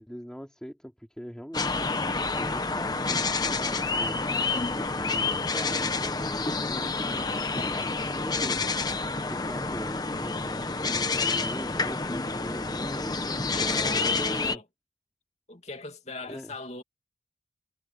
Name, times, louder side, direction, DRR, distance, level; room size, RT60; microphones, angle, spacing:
voice 1, 0.0-4.2 4.8-8.9 9.3-14.6 16.2-16.5, equal, 5° left, 3.3 m, -41 dB
sound 1, 1.5-14.6, left 3 dB, 20° left, 1.1 m, -28 dB
voice 2, 13.3-14.6 15.5-16.8, left 2 dB, 35° left, 2.7 m, -41 dB
head